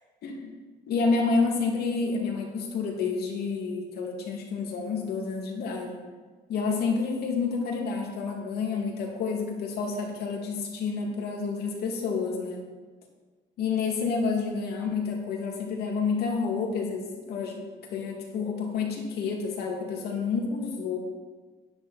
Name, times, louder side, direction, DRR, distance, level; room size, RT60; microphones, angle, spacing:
voice 1, 0.2-0.5 0.9-6.0 6.5-12.6 13.6-17.6 17.9-21.0, left 4 dB, 70° left, 0 dB, 2.5 m, -29 dB
10.5 x 9.5 x 4.4 m, 1.3 s
cardioid pair, 110°, 17 cm